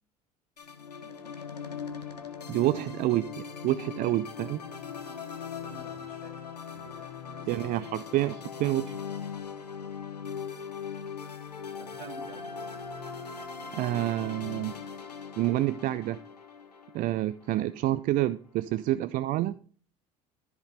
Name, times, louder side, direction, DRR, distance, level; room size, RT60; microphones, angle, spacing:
sound 1, 0.6-17.9, left 6 dB, 90° left, 0.9 m, -40 dB
voice 1, 2.5-4.6 7.5-9.0 13.7-14.7 15.4-16.2 16.9-19.6, right 15 dB, 45° right, 0.4 m, -28 dB
voice 2, 5.4-6.3 6.7-7.7 11.8-12.4, right 5 dB, 65° right, 2.1 m, -50 dB
13.5 x 5.2 x 3.3 m
figure-of-eight pair, 65°, 20 cm